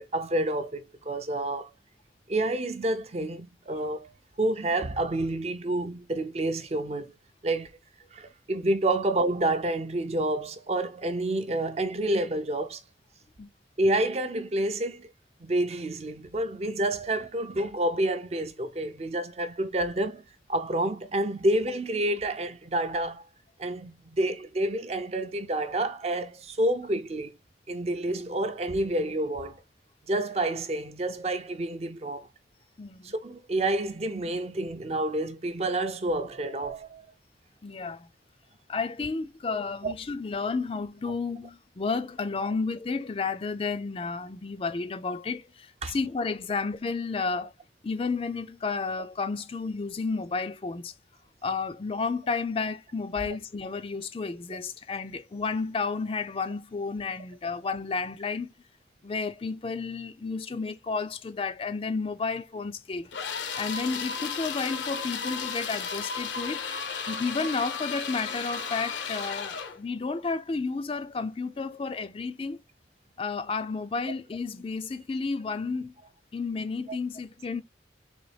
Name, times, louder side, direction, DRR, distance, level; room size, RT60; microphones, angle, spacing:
voice 1, 0.0-1.7 2.3-4.1 4.4-7.1 7.4-7.7 8.1-12.8 13.8-15.1 15.4-20.2 20.5-23.2 23.6-27.3 27.7-29.6 30.1-32.3 33.0-37.1 39.8-39.9 45.8-46.0, right 1 dB, 35° right, 0.5 m, -29 dB
voice 2, 32.8-33.1 37.6-38.1 38.7-47.5 47.8-50.9 51.4-58.5 59.0-63.1 63.6-66.7 67.1-72.6 73.2-75.9 76.3-77.6, left 4 dB, 30° left, 0.4 m, -32 dB
sound 1, 63.1-69.8, left 6 dB, 85° left, 0.9 m, -34 dB
4.0 x 3.0 x 3.2 m
head